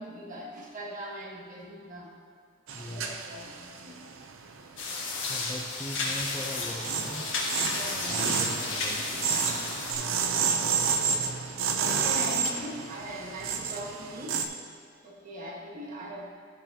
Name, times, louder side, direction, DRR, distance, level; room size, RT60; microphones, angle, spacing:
voice 1, 0.0-2.1 2.8-4.0 7.5-8.2 10.0-10.4 11.7-16.3, equal, 40° right, -2 dB, 1.3 m, -41 dB
voice 2, 2.7-3.2 5.3-7.3 8.1-8.6 8.8-9.3, left 1 dB, 15° left, 1 dB, 0.5 m, -40 dB
sound 1, 2.7-5.1 5.5-14.5, right 6 dB, 85° right, 0.6 m, -30 dB
sound 2, 4.8-9.9, left 3 dB, 70° left, 1.6 m, -33 dB
14.5 x 5.6 x 2.8 m, 2.2 s
head